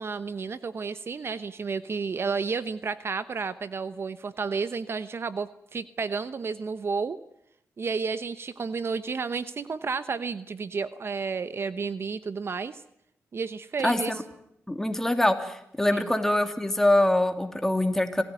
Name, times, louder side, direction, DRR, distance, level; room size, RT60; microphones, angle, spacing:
voice 1, 0.0-7.2 7.8-12.8 13.3-14.2 15.9-16.1, right 5 dB, 50° right, 13 dB, 0.9 m, -31 dB
voice 2, 13.8-14.2 14.7-18.2, left 1 dB, 10° left, 6 dB, 2.8 m, -24 dB
26.5 x 17.0 x 9.3 m, 0.76 s
cardioid pair, 90°, 5 cm